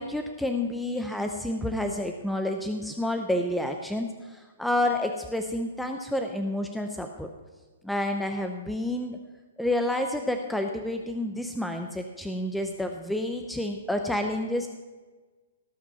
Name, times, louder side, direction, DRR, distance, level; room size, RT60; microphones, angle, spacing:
voice 1, 0.0-7.3 7.8-9.2 9.6-14.7, left 1 dB, 5° left, 5 dB, 0.7 m, -29 dB
18.0 x 6.1 x 5.6 m, 1.3 s
hypercardioid pair, 125°, 0 cm